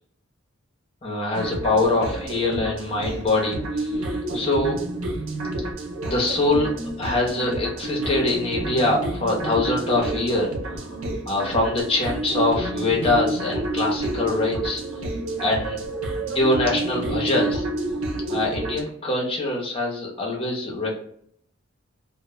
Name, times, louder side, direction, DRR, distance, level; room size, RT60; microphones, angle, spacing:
voice 1, 1.0-4.1 4.3-4.8 6.0-6.7 7.0-11.0 11.3-15.1 15.4-15.8 16.2-17.7 18.3-21.0, left 2 dB, 30° left, -2 dB, 0.7 m, -24 dB
sound 1, 1.3-18.8, right 2 dB, 85° right, 0.5 m, -29 dB
2.1 x 2.0 x 3.0 m, 0.67 s
head